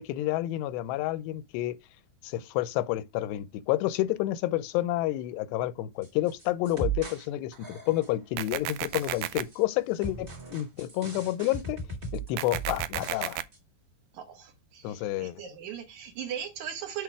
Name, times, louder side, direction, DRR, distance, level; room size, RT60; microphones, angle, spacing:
voice 1, 0.0-1.8 2.2-11.8 12.1-13.4 14.8-15.4, left 15 dB, 85° left, 2.8 m, -29 dB
sound 1, 6.0-7.3 7.5-8.2 8.8-9.6 10.0-13.3 13.5-13.6, right 4 dB, 25° right, 2.4 m, -37 dB
sound 2, 8.4-9.4 12.4-13.4, right 15 dB, 85° right, 2.1 m, -33 dB
voice 2, 14.1-17.0, right 9 dB, 55° right, 2.5 m, -39 dB
7.9 x 3.6 x 4.7 m
omnidirectional pair, 4.8 m